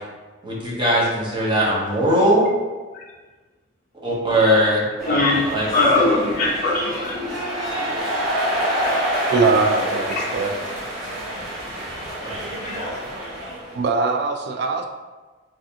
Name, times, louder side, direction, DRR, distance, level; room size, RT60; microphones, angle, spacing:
voice 1, 0.4-2.5 4.0-4.9 5.5-5.7 12.2-12.8, equal, 25° right, -5 dB, 0.7 m, -20 dB
voice 2, 5.0-5.4 5.7-7.2 10.2-10.3 12.6-12.9, left 2 dB, 50° left, -3 dB, 0.6 m, -20 dB
sound 1, 5.0-13.8, equal, 90° right, 0.9 m, -27 dB
voice 3, 9.3-10.5 13.7-14.9, right 4 dB, 60° right, 4 dB, 0.3 m, -21 dB
3.2 x 2.5 x 2.7 m, 1.3 s
head